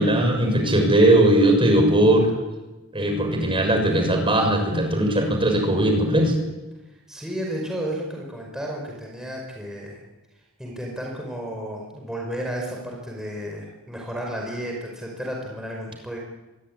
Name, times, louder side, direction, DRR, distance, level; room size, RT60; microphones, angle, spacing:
voice 1, 0.0-2.3 2.9-6.4, right 1 dB, 25° right, 4 dB, 6.5 m, -19 dB
voice 2, 6.9-10.0 10.6-16.2, equal, 5° right, -1 dB, 5.2 m, -32 dB
25.5 x 22.0 x 9.9 m, 1.1 s
head